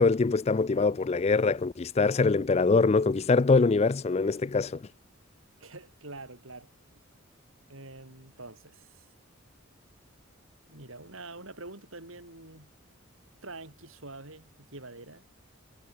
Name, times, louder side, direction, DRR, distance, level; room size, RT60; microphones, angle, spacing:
voice 1, 0.0-4.8, left 4 dB, 30° left, 0.4 m, -23 dB
voice 2, 5.6-6.7 7.7-9.1 10.7-12.7 13.4-15.3, right 2 dB, 70° right, 5.7 m, -45 dB
head